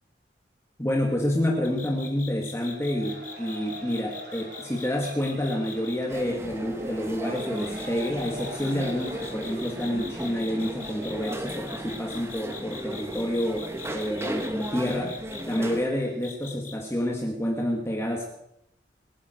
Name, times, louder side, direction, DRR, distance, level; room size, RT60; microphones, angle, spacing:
voice 1, 0.8-15.2 15.5-18.3, left 1 dB, 15° left, 0 dB, 2.1 m, -28 dB
sound 1, 1.6-6.0 7.3-15.6 16.2-16.7, left 6 dB, 45° left, 2.5 m, -42 dB
Cheering / Applause / Crowd, 2.7-11.6, right 2 dB, 70° right, 7.0 m, -45 dB
sound 2, 6.1-15.9, right 1 dB, 15° right, 1.5 m, -36 dB
27.5 x 10.5 x 4.6 m, 0.79 s
head